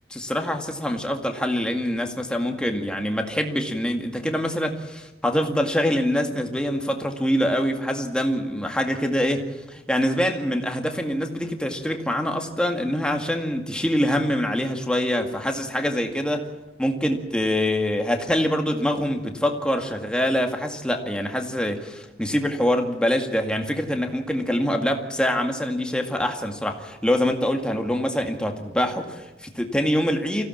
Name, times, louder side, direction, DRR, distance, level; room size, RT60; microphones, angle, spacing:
voice 1, 0.1-16.5 16.8-30.5, equal, 5° left, 3 dB, 2.0 m, -25 dB
24.5 x 16.5 x 7.4 m, 1.0 s
head